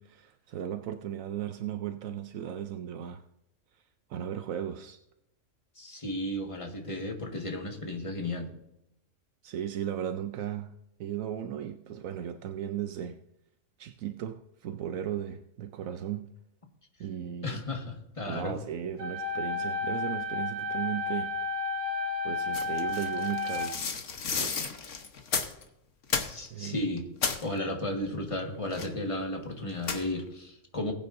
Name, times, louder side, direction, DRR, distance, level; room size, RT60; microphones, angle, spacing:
voice 1, 0.0-3.2 3.7-3.8 4.1-5.0 9.4-10.7 11.0-13.2 13.8-16.2 17.0-17.6 18.3-21.3 22.2-23.8 24.4-24.5 26.5-26.9, right 10 dB, 80° right, 8 dB, 1.0 m, -36 dB
voice 2, 5.7-8.5 17.4-18.5 26.3-27.1 27.4-30.9, left 1 dB, 25° left, 2 dB, 1.6 m, -34 dB
sound 1, 19.0-24.0, left 3 dB, 55° right, 1.5 m, -32 dB
sound 2, 22.5-25.6 26.0-26.7 27.0-27.5 28.7-29.1 29.8-30.2, left 5 dB, 65° left, 1.5 m, -33 dB
20.0 x 9.1 x 2.6 m, 0.84 s
omnidirectional pair, 1.4 m